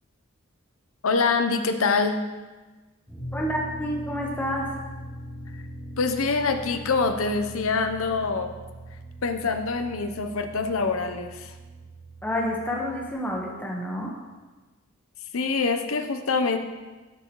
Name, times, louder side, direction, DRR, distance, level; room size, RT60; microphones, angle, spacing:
voice 1, 1.0-2.2 6.0-8.5 9.2-11.5 15.3-16.6, left 4 dB, 80° left, 7 dB, 0.7 m, -25 dB
sound 1, 3.1-13.1, right 1 dB, 15° right, 2.7 m, -41 dB
voice 2, 3.3-4.7 12.2-14.2, equal, 10° left, -2 dB, 1.2 m, -29 dB
12.0 x 6.4 x 3.1 m, 1.3 s
head